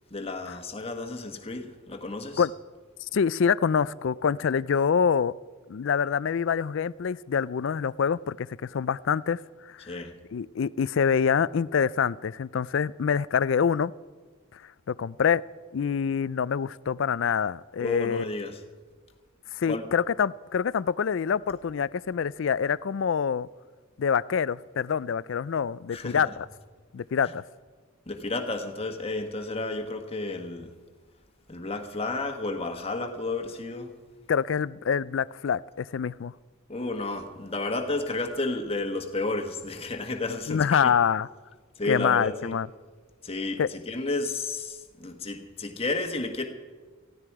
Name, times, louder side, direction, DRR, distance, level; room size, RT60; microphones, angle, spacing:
voice 1, 0.1-2.4 9.8-10.1 17.8-18.6 19.6-19.9 25.9-26.3 28.1-30.7 31.5-33.9 36.7-40.9 41.8-42.6 43.2-46.4, left 2 dB, 25° left, 4 dB, 1.4 m, -32 dB
voice 2, 3.1-5.3 5.7-9.4 9.7-10.0 10.3-13.9 14.9-15.4 15.7-18.2 19.5-23.5 24.0-26.3 26.9-27.4 34.3-36.3 40.5-41.3 41.9-42.7 43.6-43.7, left 7 dB, 60° left, 20 dB, 0.4 m, -26 dB
17.5 x 15.0 x 4.8 m, 1.4 s
head